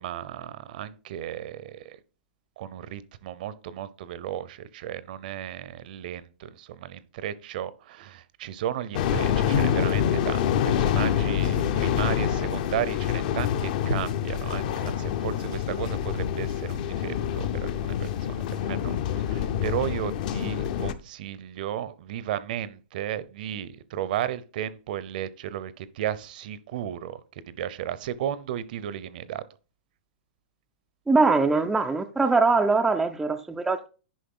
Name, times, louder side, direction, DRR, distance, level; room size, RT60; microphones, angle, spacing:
voice 1, 0.0-2.0 2.6-27.2 27.5-29.4, right 11 dB, 50° right, 0.7 m, -34 dB
sound 1, 8.9-20.9, left 9 dB, 45° left, 0.7 m, -26 dB
voice 2, 31.1-33.9, right 3 dB, 5° right, 0.4 m, -22 dB
10.5 x 5.4 x 3.7 m
hypercardioid pair, 160°, 6 cm